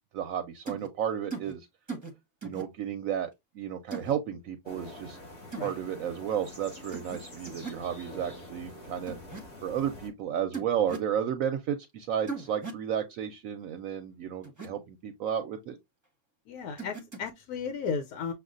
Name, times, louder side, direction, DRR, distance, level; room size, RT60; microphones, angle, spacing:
voice 1, 0.1-1.7 2.4-3.3 3.5-5.2 5.6-9.2 9.6-15.8, right 9 dB, 70° right, 0.9 m, -32 dB
sound 1, 0.7-0.9 1.3-1.5 1.9-2.1 2.4-2.6 3.9-4.1 5.5-5.7 6.9-7.2 7.5-7.8 9.1-9.4 10.5-11.1 12.3-12.8 14.4-14.7 16.8-17.3, right 4 dB, 15° right, 0.9 m, -38 dB
sound 2, 4.6-10.1, left 1 dB, 45° left, 2.5 m, -46 dB
voice 2, 16.5-18.3, left 6 dB, 80° left, 1.1 m, -34 dB
6.7 x 2.4 x 2.4 m
omnidirectional pair, 1.6 m